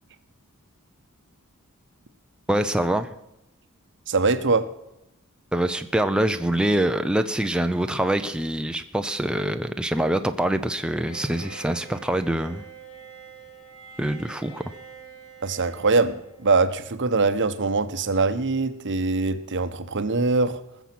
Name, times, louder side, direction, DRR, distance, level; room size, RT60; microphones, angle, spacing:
voice 1, 2.5-3.1 5.5-12.6 14.0-14.6, right 1 dB, 5° right, 7 dB, 0.5 m, -24 dB
voice 2, 4.1-4.7 15.4-20.6, right 3 dB, 55° right, 12 dB, 0.9 m, -23 dB
Bowed string instrument, 10.7-16.8, right 5 dB, 65° left, 5.7 m, -46 dB
20.5 x 7.1 x 6.0 m, 0.87 s
head